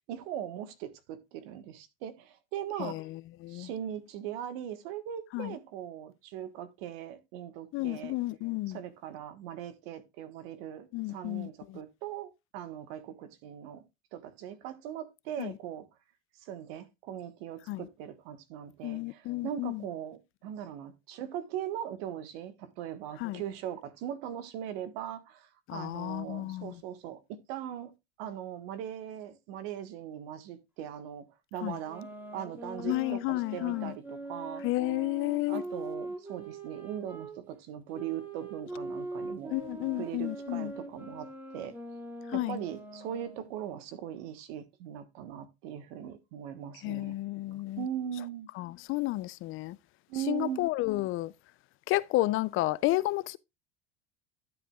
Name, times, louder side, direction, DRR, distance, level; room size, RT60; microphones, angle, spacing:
voice 1, 0.1-3.1 3.5-8.2 8.7-13.8 14.1-15.9 16.4-27.9 28.2-31.2 31.5-32.1 32.3-34.6 35.5-39.6 40.0-41.3 41.5-41.7 42.3-47.2 47.8-48.5 50.1-50.6, right 10 dB, 70° right, 1.4 m, -40 dB
voice 2, 2.8-3.7 5.3-5.5 7.7-8.8 10.9-11.8 15.4-15.5 17.7-17.9 18.8-19.8 23.2-23.4 25.7-26.8 31.6-31.8 32.8-33.9 34.6-35.6 39.5-40.7 42.3-42.6 46.8-47.8 48.6-49.8 50.3-51.3 51.9-53.4, left 18 dB, 45° left, 0.4 m, -32 dB
sound 1, 31.7-37.4 37.9-43.5, right 2 dB, 5° right, 2.1 m, -42 dB
11.5 x 7.4 x 2.3 m
supercardioid pair, 110°, 31 cm